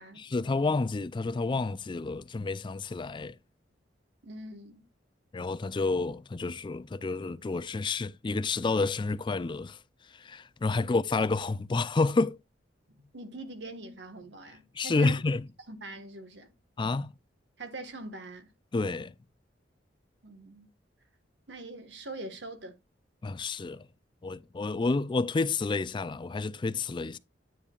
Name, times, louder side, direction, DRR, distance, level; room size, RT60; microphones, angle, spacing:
voice 1, 0.2-3.4 5.3-9.8 10.1-12.4 14.7-15.4 16.8-17.1 18.7-19.1 23.2-23.9 24.2-27.2, left 3 dB, 25° left, 0.4 m, -29 dB
voice 2, 4.2-4.8 10.7-10.9 12.9-15.2 15.7-16.5 17.6-18.5 20.2-20.7 21.5-22.8, right 2 dB, 70° right, 1.4 m, -43 dB
9.7 x 6.8 x 2.4 m
head